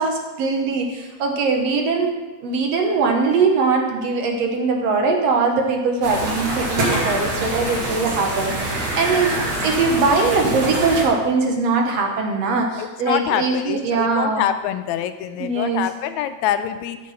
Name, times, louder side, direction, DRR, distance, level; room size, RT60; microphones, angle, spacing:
voice 1, 0.0-2.1 2.4-14.4 15.4-15.8, right 4 dB, 65° right, 2 dB, 2.1 m, -21 dB
sound 1, 6.0-11.0, right 1 dB, 50° right, 2.6 m, -25 dB
voice 2, 12.8-17.0, left 10 dB, 80° left, 10 dB, 1.9 m, -25 dB
9.4 x 7.6 x 5.8 m, 1.2 s
omnidirectional pair, 3.4 m